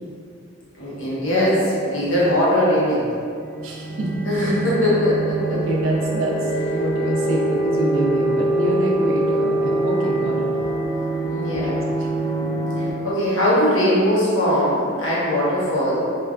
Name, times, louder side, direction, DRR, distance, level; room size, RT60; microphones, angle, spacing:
voice 1, 0.8-3.1 4.2-5.4 11.3-11.8 13.0-16.0, equal, 65° left, -8 dB, 0.8 m, -20 dB
sound 1, 3.3-12.9, right 2 dB, 25° left, 0.3 m, -24 dB
voice 2, 3.6-4.1 5.5-10.5 11.6-11.7, right 1 dB, 70° right, -2 dB, 0.4 m, -26 dB
3.1 x 2.2 x 2.4 m, 2.4 s
head